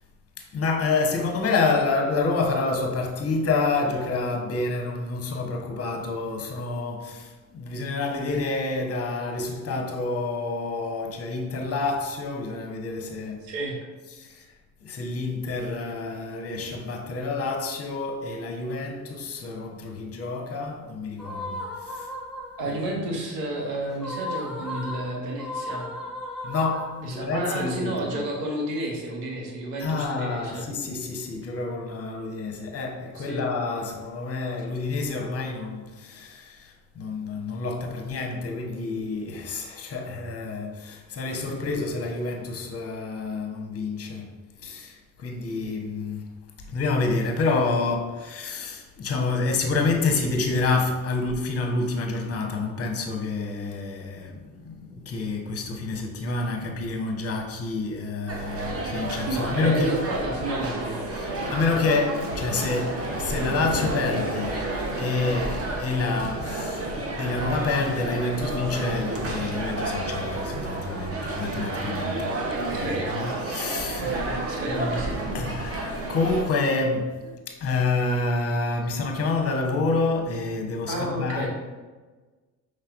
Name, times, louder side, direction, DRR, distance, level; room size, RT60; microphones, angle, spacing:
voice 1, 0.5-13.4 14.2-14.4 14.8-22.1 22.7-22.8 26.4-28.2 29.8-44.3 44.6-46.2 46.7-60.0 61.2-64.7 65.0-66.9 67.2-72.3 72.7-73.0 73.4-74.1 75.3-81.5, left 3 dB, 30° left, 0.9 m, -28 dB
voice 2, 13.4-13.8 22.6-25.9 27.0-30.7 33.1-33.4 59.2-61.0 72.8-73.4 74.0-75.2 80.9-81.5, right 1 dB, 70° right, 1.1 m, -31 dB
sound 1, 21.2-22.9 23.9-27.3, left 1 dB, ahead, 1.1 m, -36 dB
sound 2, 58.3-76.4, right 2 dB, 30° right, 0.9 m, -30 dB
5.5 x 3.2 x 2.5 m
figure-of-eight pair, 50°, 49 cm